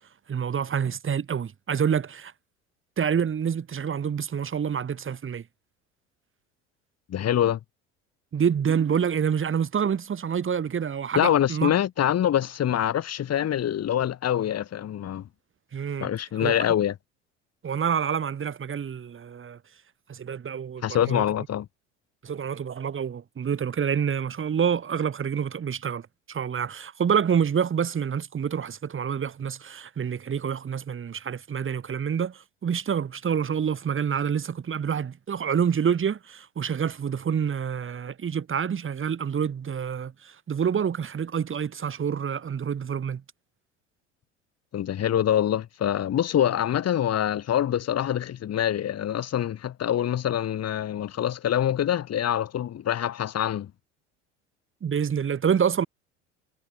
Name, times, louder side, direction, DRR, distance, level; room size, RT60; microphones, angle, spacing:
voice 1, 0.3-2.3 3.0-5.4 8.3-11.7 15.7-16.1 16.4-16.5 17.6-19.6 20.1-21.2 22.2-43.2 54.8-55.9, right 7 dB, 35° right, 7.8 m, -27 dB
voice 2, 7.1-7.6 11.1-15.3 16.0-16.9 20.8-21.7 44.7-53.7, left 10 dB, 40° left, 6.8 m, -25 dB
hypercardioid pair, 70°, 37 cm